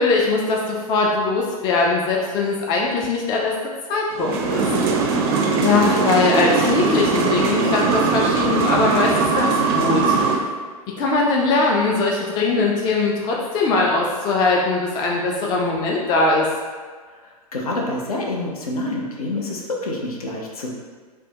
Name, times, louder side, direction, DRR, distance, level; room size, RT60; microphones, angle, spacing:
voice 1, 0.0-3.5 3.9-4.7 5.6-10.1 11.0-16.5, left 3 dB, 25° left, -2 dB, 0.3 m, -21 dB
sound 1, 4.1-10.4, right 4 dB, 40° right, 0.4 m, -20 dB
voice 2, 17.2-20.7, left 2 dB, 70° left, -1 dB, 0.6 m, -27 dB
3.3 x 2.1 x 2.8 m, 1.5 s
figure-of-eight pair, 100°, 20 cm